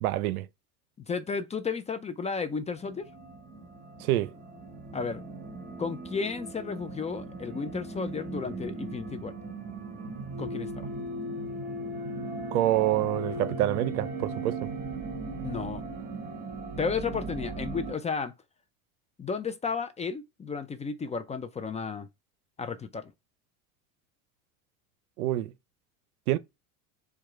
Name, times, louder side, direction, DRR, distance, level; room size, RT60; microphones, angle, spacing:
voice 1, 0.0-0.5 4.0-4.3 12.5-14.7 25.2-25.5 26.3-26.4, right 15 dB, 85° right, 0.6 m, -27 dB
voice 2, 1.0-3.1 4.9-5.2 5.8-9.3 10.4-10.9 15.4-15.8 16.8-18.3 19.2-22.1 22.6-23.1, left 5 dB, 15° left, 0.4 m, -33 dB
sound 1, 2.8-17.9, right 2 dB, 20° right, 2.5 m, -38 dB
4.7 x 2.3 x 4.5 m
hypercardioid pair, 90°, 43 cm